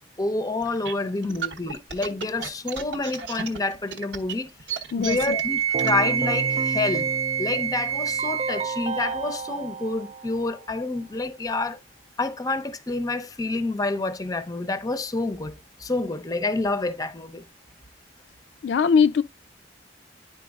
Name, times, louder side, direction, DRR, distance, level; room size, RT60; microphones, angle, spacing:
voice 1, 0.2-7.1 7.4-11.8 12.2-17.4, left 2 dB, 20° left, 0.6 m, -28 dB
sound 1, 0.6-6.0, right 6 dB, 80° right, 1.0 m, -34 dB
voice 2, 4.9-5.4 18.6-19.2, left 6 dB, 70° left, 0.3 m, -21 dB
Wind instrument woodwind instrument, 5.0-8.7, right 8 dB, 15° right, 0.8 m, -26 dB
Keyboard (musical), 5.7-10.7, right 3 dB, 35° right, 0.3 m, -32 dB
10.5 x 4.6 x 2.3 m
head